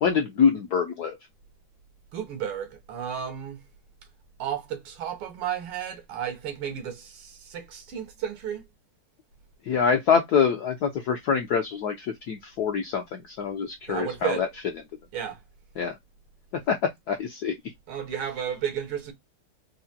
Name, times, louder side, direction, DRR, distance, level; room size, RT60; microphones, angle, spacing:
voice 1, 0.0-1.2 9.6-14.5 15.8-15.9 16.7-16.8 17.1-17.5, left 6 dB, 75° left, 0.9 m, -25 dB
voice 2, 2.1-3.6 4.4-8.6 13.9-14.4 15.1-15.4 17.9-19.1, right 9 dB, 85° right, 1.9 m, -33 dB
4.8 x 2.1 x 2.6 m
omnidirectional pair, 2.3 m